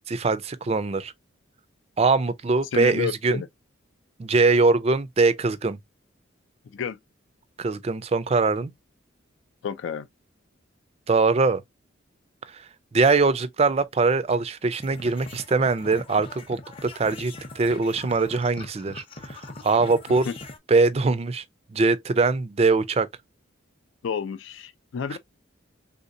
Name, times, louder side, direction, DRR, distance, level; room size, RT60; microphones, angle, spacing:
voice 1, 0.1-1.1 2.0-3.4 4.2-5.8 7.6-8.7 11.1-11.6 12.9-19.4 19.6-20.3 20.7-21.4 21.7-23.1 25.1-25.2, right 3 dB, 30° right, 0.4 m, -22 dB
voice 2, 2.7-3.5 6.7-7.0 9.6-10.1 20.3-20.4 24.0-25.2, left 7 dB, 70° left, 0.3 m, -30 dB
sound 1, 14.8-20.6, left 2 dB, 30° left, 0.6 m, -41 dB
3.5 x 2.8 x 2.5 m
head